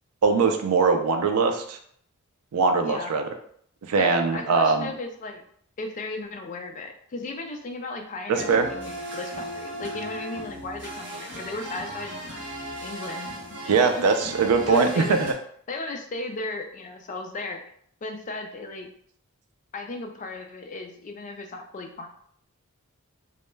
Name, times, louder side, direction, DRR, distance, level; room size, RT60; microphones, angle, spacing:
voice 1, 0.2-1.8 2.5-3.2 3.9-4.9 8.3-8.7 13.7-15.3, right 4 dB, 85° right, 6 dB, 0.4 m, -21 dB
voice 2, 2.8-3.2 4.0-5.4 5.8-12.2 12.8-14.1 14.7-15.2 15.7-17.6 18.0-18.9 19.7-22.1, left 2 dB, 35° left, 4 dB, 0.3 m, -36 dB
sound 1, 8.3-15.3, right 1 dB, 55° right, 0.7 m, -36 dB
2.2 x 2.1 x 3.1 m, 0.64 s
head